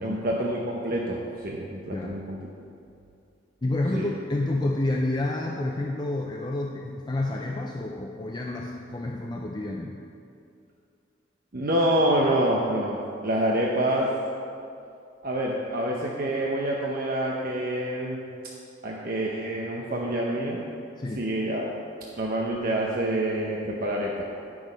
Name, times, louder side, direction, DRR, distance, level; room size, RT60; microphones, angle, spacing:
voice 1, 0.0-2.4 3.9-4.1 11.5-13.0 13.2-14.1 15.2-18.2 18.8-20.8 21.2-21.7 22.2-24.1, right 1 dB, 50° right, -3 dB, 0.7 m, -27 dB
voice 2, 3.6-10.0 21.0-21.2, left 2 dB, 25° left, 0 dB, 0.4 m, -29 dB
9.1 x 6.1 x 5.1 m, 2.5 s
head